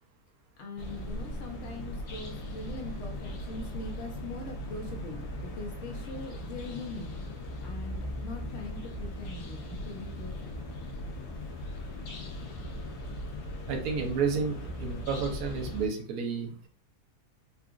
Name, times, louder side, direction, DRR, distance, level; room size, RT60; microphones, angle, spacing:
voice 1, 0.6-5.2 5.6-7.2 7.6-10.5, left 2 dB, 55° left, 1 dB, 1.1 m, -42 dB
sound 1, 0.8-15.9, left 1 dB, 80° left, 1.3 m, -39 dB
voice 2, 13.7-16.7, right 5 dB, 70° right, 2 dB, 1.2 m, -31 dB
3.8 x 2.4 x 2.4 m, 0.42 s
omnidirectional pair, 1.7 m